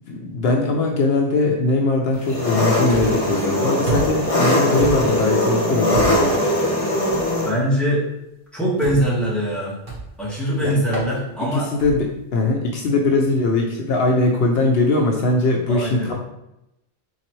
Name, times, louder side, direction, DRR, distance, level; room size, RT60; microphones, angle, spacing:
voice 1, 0.1-6.4 10.6-10.7 11.5-16.1, left 2 dB, 70° left, 1 dB, 0.8 m, -20 dB
Engine, 2.2-7.5, left 1 dB, 35° left, 0.9 m, -21 dB
sound 1, 2.9-3.3 3.9-4.3 4.8-5.2 5.9-6.4 7.1-7.3 8.8-9.2 9.9-10.2 10.9-11.1 11.8-12.1, right 3 dB, 50° right, 1.3 m, -28 dB
voice 2, 7.4-8.1 8.5-9.8 10.2-11.7 15.7-16.1, equal, ahead, -7 dB, 1.3 m, -22 dB
3.9 x 3.9 x 3.0 m, 0.87 s
omnidirectional pair, 1.1 m